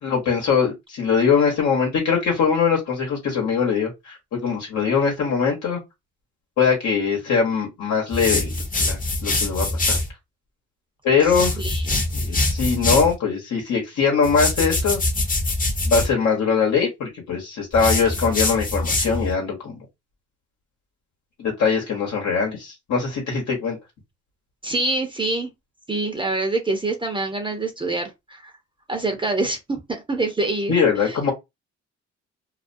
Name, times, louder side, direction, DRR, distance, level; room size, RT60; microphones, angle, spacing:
voice 1, 0.0-5.8 6.6-10.0 11.0-11.5 12.1-15.0 15.8-19.8 21.4-23.8 30.7-31.3, left 5 dB, 65° left, 1.1 m, -22 dB
sound 1, 8.1-10.1 11.2-13.1 14.2-16.1 17.7-19.3, left 2 dB, 30° left, 0.8 m, -24 dB
voice 2, 11.2-12.0 24.6-25.5 25.9-28.5 28.9-29.8 30.1-31.3, right 2 dB, 15° right, 0.7 m, -26 dB
2.3 x 2.2 x 2.6 m
cardioid pair, 90°, 30 cm